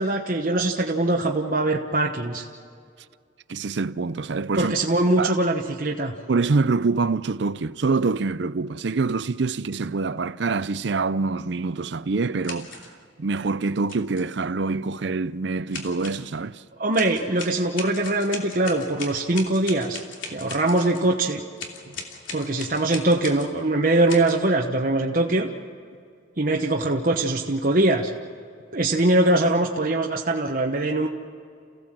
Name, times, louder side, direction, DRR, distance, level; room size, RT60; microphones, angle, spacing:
voice 1, 0.0-2.4 4.5-6.1 16.8-20.0 20.3-21.4 22.3-25.5 26.4-28.1 28.7-31.1, right 2 dB, 45° right, 1.1 m, -22 dB
voice 2, 3.5-4.7 5.2-5.4 6.3-12.7 13.2-16.6 21.9-22.0, right 4 dB, 70° right, 0.6 m, -25 dB
sound 1, 12.4-12.9 13.9-14.3 15.7-16.3 16.9-21.1 21.6-23.5 24.1-24.3, left 4 dB, 85° left, 3.0 m, -38 dB
29.0 x 16.5 x 7.6 m
head